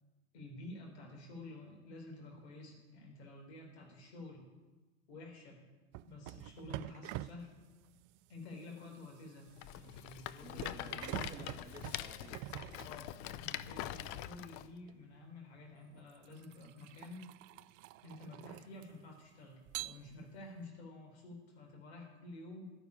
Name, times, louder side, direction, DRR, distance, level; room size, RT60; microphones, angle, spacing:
voice 1, 0.3-4.5 5.1-5.6 6.0-7.5 8.3-11.2 12.8-17.3 18.0-22.7, left 2 dB, 70° left, 1 dB, 4.1 m, -51 dB
sound 1, 5.9-13.5 14.9-15.1 15.8-19.1 19.7-20.5, right 16 dB, 45° right, 0.4 m, -47 dB
Rattle, 9.6-14.7, left 13 dB, 50° left, 0.6 m, -44 dB
voice 2, 10.4-12.7, right 3 dB, 10° right, 1 dB, 2.2 m, -54 dB
12.5 x 7.0 x 9.7 m, 1.2 s
hypercardioid pair, 80°, 34 cm